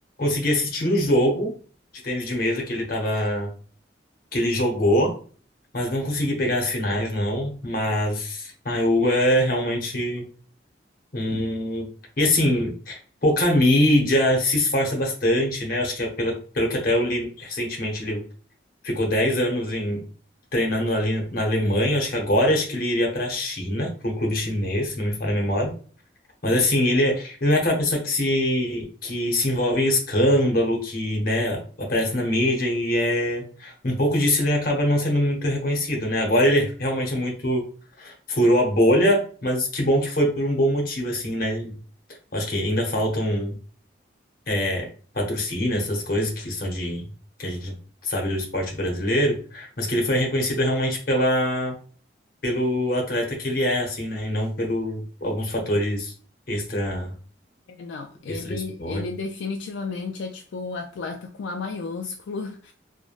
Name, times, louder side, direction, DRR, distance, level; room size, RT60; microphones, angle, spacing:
voice 1, 0.2-1.5 2.0-3.5 4.3-5.1 5.7-10.2 11.1-11.9 12.2-18.2 18.8-20.0 20.5-25.7 26.4-37.7 38.0-41.8 42.3-43.5 44.5-44.9 45.1-47.0 47.4-47.7 48.0-51.7 52.4-56.1 56.5-57.1 58.3-59.0, left 1 dB, 50° left, 0.8 m, -23 dB
voice 2, 57.8-62.7, left 4 dB, 75° left, 0.3 m, -33 dB
3.1 x 2.1 x 2.3 m
head